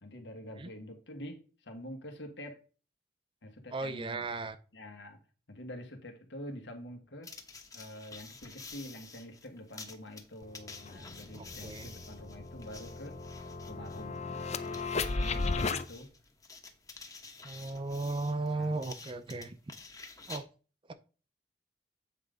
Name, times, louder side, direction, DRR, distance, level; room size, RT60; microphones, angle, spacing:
voice 1, 0.0-2.7 3.4-4.3 4.7-5.2 5.5-7.4 7.7-13.2 13.7-16.1 18.5-18.9, left 1 dB, 80° left, 1.6 m, -46 dB
voice 2, 3.7-4.6 11.3-11.9 17.4-19.6 20.3-20.4, right 3 dB, 30° right, 0.5 m, -35 dB
sound 1, 7.2-20.4, left 4 dB, 20° left, 1.0 m, -50 dB
sound 2, 10.4-10.5 10.8-15.8, left 3 dB, 40° left, 0.6 m, -35 dB
8.4 x 3.8 x 5.1 m
head